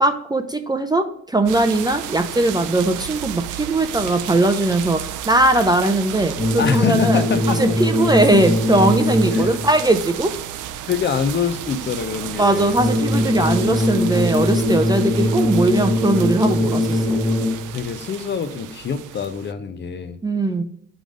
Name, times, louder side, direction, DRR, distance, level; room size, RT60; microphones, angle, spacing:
voice 1, 0.0-7.2 7.6-10.3 12.4-17.2 20.2-20.6, right 2 dB, 15° right, 7 dB, 0.4 m, -19 dB
sound 1, 1.5-19.5, right 11 dB, 85° right, 0.5 m, -33 dB
sound 2, 6.3-9.8 12.7-17.8, left 1 dB, 5° left, 1.1 m, -21 dB
voice 2, 6.6-7.8 9.3-9.7 10.9-12.8 17.7-20.2, left 6 dB, 35° left, 10 dB, 0.5 m, -25 dB
5.0 x 3.9 x 4.9 m, 0.67 s
cardioid pair, 90°, 30 cm